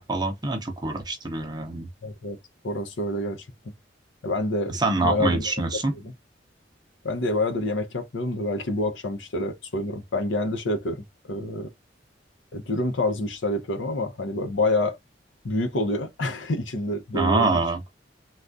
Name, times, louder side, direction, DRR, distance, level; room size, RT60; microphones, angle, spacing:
voice 1, 0.0-1.9 4.7-5.9 17.1-17.8, right 2 dB, 20° right, 0.6 m, -25 dB
voice 2, 2.0-2.4 2.6-3.5 4.2-5.5 6.0-6.1 7.0-11.7 12.5-15.0 15.4-17.6, left 1 dB, 85° left, 0.7 m, -27 dB
3.5 x 2.3 x 2.5 m
head